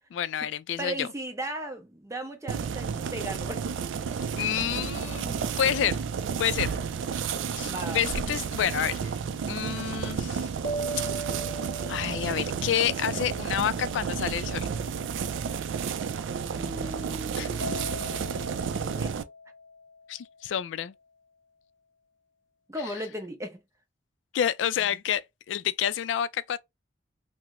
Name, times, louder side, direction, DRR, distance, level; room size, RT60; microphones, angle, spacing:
voice 1, 0.1-1.1 4.3-6.0 6.4-6.8 7.5-9.1 9.5-10.5 11.9-14.7 17.4-17.5 20.1-20.9 24.3-26.6, left 9 dB, 75° left, 0.3 m, -29 dB
voice 2, 0.8-3.7 7.6-8.0 16.4-18.1 18.7-19.2 22.7-23.6, right 1 dB, 15° right, 0.5 m, -36 dB
sound 1, 2.5-19.2, right 6 dB, 90° right, 0.4 m, -32 dB
sound 2, 10.6-14.2 17.6-20.6, right 2 dB, 45° left, 0.6 m, -39 dB
2.9 x 2.0 x 3.5 m
head